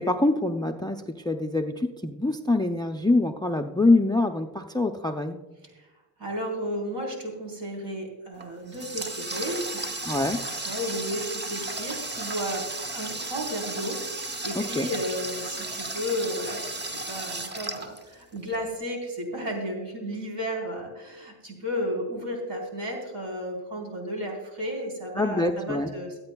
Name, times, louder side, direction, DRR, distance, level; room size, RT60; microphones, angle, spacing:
voice 1, 0.0-5.4 10.0-10.4 14.5-14.9 25.2-25.9, left 2 dB, 10° left, 6 dB, 0.4 m, -25 dB
voice 2, 6.2-10.2 10.6-12.7 12.9-26.2, equal, 65° right, 1 dB, 4.2 m, -33 dB
Water tap faucet, 8.4-18.6, right 2 dB, 25° right, 0.9 m, -34 dB
23.5 x 8.9 x 2.3 m, 1.2 s
cardioid pair, 125°, 45 cm